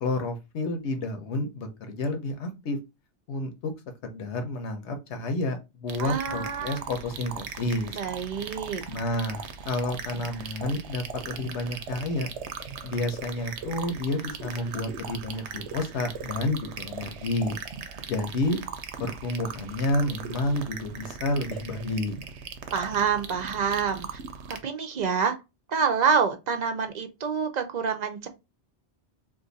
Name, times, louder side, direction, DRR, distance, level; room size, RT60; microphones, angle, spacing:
voice 1, 0.0-2.8 3.3-3.7 4.0-8.0 8.9-12.3 12.8-17.6 18.0-18.6 19.0-22.2, left 2 dB, 80° left, 1.1 m, -30 dB
sound 1, 5.9-24.6, right 6 dB, 85° right, 0.9 m, -39 dB
voice 2, 6.0-6.8 7.9-8.8 22.7-24.2 24.5-25.4 25.7-28.3, right 6 dB, 55° right, 0.5 m, -27 dB
2.5 x 2.5 x 3.9 m
omnidirectional pair, 1.2 m